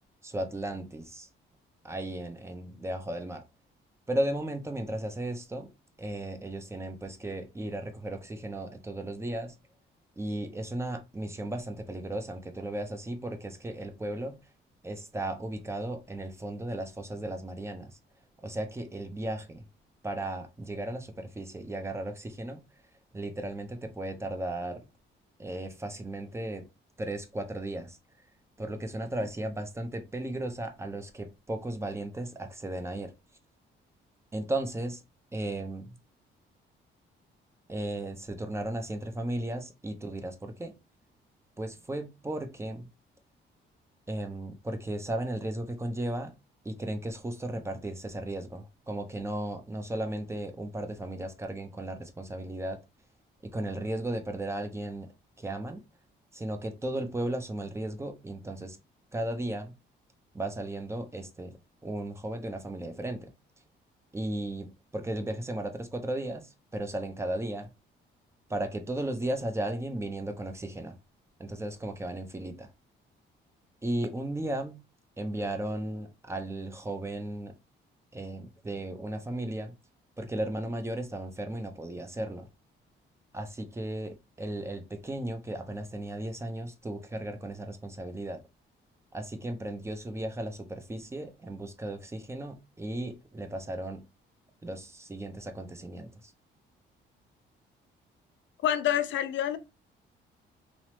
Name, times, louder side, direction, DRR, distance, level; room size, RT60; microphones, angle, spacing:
voice 1, 0.2-1.3 1.8-3.4 4.1-5.7 6.0-9.5 10.2-14.4 14.8-18.0 18.4-19.6 20.0-22.6 23.1-24.8 25.4-26.7 27.0-28.0 28.6-33.1 34.3-35.0 35.3-36.0 37.7-40.7 41.6-42.9 44.1-46.3 46.6-52.8 53.4-55.8 56.3-58.8 59.1-59.7 60.3-61.6 61.8-63.3 64.1-67.7 68.5-71.0 71.4-72.7 73.8-74.8 75.2-77.5 78.1-79.7 80.2-82.5 83.3-88.4 89.1-94.1 94.6-96.3, right 1 dB, 15° right, 0.6 m, -35 dB
voice 2, 98.6-99.6, left 11 dB, 70° left, 0.5 m, -27 dB
3.0 x 2.0 x 3.0 m
cardioid pair, 90°, 20 cm